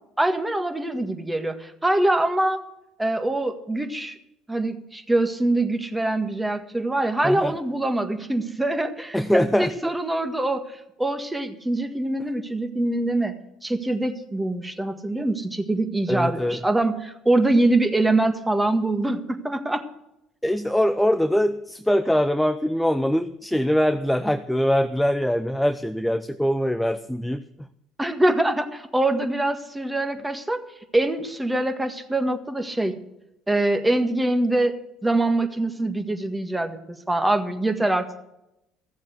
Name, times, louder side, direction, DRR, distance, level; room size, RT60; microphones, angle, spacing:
voice 1, 0.2-2.6 3.0-4.2 4.5-13.3 13.6-19.8 28.0-30.6 30.9-32.9 33.5-34.7 35.0-38.2, right 2 dB, 10° right, 7 dB, 1.7 m, -24 dB
voice 2, 7.2-7.6 9.1-9.9 16.1-16.6 20.4-27.4, equal, 5° left, 10 dB, 0.6 m, -22 dB
14.5 x 7.4 x 8.0 m, 0.86 s
hypercardioid pair, 65°, 0 cm